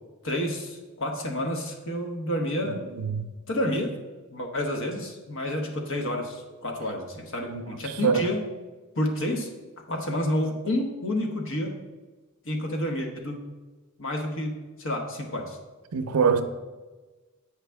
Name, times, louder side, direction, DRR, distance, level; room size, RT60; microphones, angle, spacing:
voice 1, 0.2-2.8 3.5-4.0 4.3-8.5 8.9-9.5 9.9-11.8 12.4-13.4 14.0-15.6, left 1 dB, 60° left, 1.0 m, -29 dB
voice 2, 2.6-3.3 7.5-7.6 8.0-8.2 15.9-16.4, right 6 dB, 85° right, 0.5 m, -24 dB
8.3 x 4.9 x 3.4 m
head